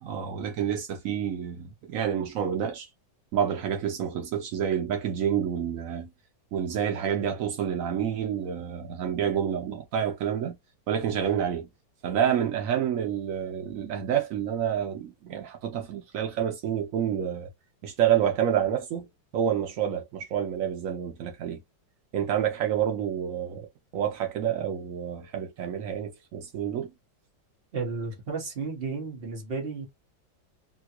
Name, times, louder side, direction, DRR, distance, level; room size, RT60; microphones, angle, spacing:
voice 1, 0.0-2.9 3.3-6.1 6.5-10.6 10.9-11.7 12.0-17.5 17.8-19.1 19.3-21.6 22.1-23.7 23.9-26.9, right 9 dB, 80° right, 0.7 m, -28 dB
voice 2, 27.7-29.9, right 4 dB, 35° right, 1.2 m, -33 dB
3.6 x 2.2 x 2.8 m
omnidirectional pair, 2.1 m